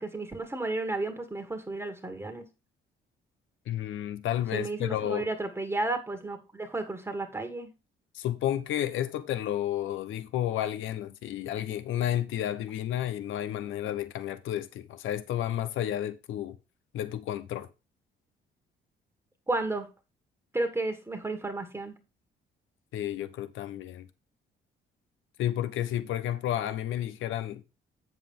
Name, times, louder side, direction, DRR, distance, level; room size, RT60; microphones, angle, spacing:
voice 1, 0.0-2.4 4.5-7.7 19.5-19.9 20.5-22.0, right 2 dB, 10° right, 1.7 m, -32 dB
voice 2, 3.7-5.3 8.1-16.6 16.9-17.7 22.9-24.1 25.4-27.6, left 11 dB, 85° left, 0.8 m, -31 dB
7.9 x 7.1 x 3.7 m
cardioid pair, 90°, 20 cm